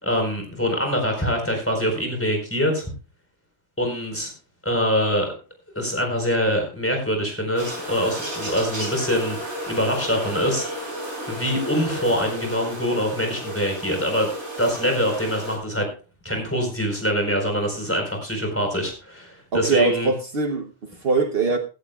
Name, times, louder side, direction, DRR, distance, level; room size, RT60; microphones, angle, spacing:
voice 1, 0.0-2.9 3.8-4.3 4.6-5.3 5.7-10.7 11.3-14.3 14.6-15.9 16.2-20.1, equal, 10° left, 4.2 m, -24 dB
sound 1, 7.6-15.6, equal, 90° right, 5.7 m, -33 dB
voice 2, 19.5-21.6, right 4 dB, 60° right, 1.1 m, -22 dB
16.0 x 15.0 x 2.3 m
omnidirectional pair, 1.2 m